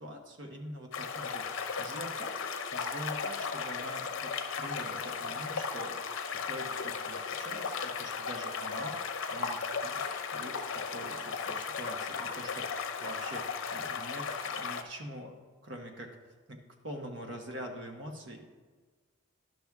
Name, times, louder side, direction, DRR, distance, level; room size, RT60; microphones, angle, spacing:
voice 1, 0.0-1.5 1.8-6.0 6.3-10.1 10.3-15.4 15.6-16.1 16.5-18.4, equal, 60° right, 3 dB, 1.2 m, -44 dB
sound 1, 0.9-14.8, left 5 dB, 70° left, 0.7 m, -36 dB
12.0 x 6.1 x 3.6 m, 1.4 s
head